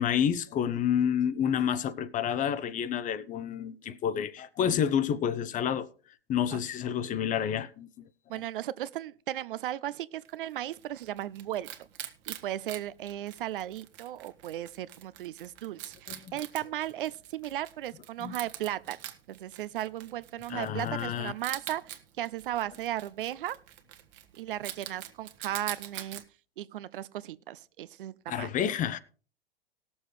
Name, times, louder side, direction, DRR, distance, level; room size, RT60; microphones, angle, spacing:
voice 1, 0.0-5.9 6.3-7.9 16.1-16.3 18.2-18.3 20.5-21.3 28.3-29.0, left 9 dB, 25° left, 0.8 m, -29 dB
voice 2, 8.3-11.9 12.3-19.0 19.3-23.6 24.4-26.2 26.6-28.5, right 13 dB, 65° right, 0.7 m, -36 dB
Wild animals, 10.2-26.2, right 13 dB, 40° right, 1.5 m, -45 dB
19.5 x 7.1 x 3.2 m
figure-of-eight pair, 95°, 29 cm